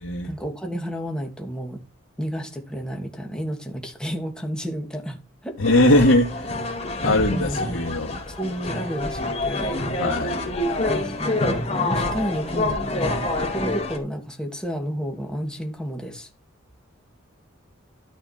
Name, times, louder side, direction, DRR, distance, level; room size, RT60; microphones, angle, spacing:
voice 1, 0.2-1.8 2.2-5.6 7.2-7.6 8.3-9.7 10.9-16.3, equal, 5° left, 2.8 m, -31 dB
voice 2, 5.6-6.5 7.0-8.2 10.0-10.5, left 1 dB, 85° left, 2.3 m, -20 dB
sound 1, 5.6-14.0, left 2 dB, 30° left, 4.3 m, -27 dB
13.5 x 5.8 x 5.9 m
head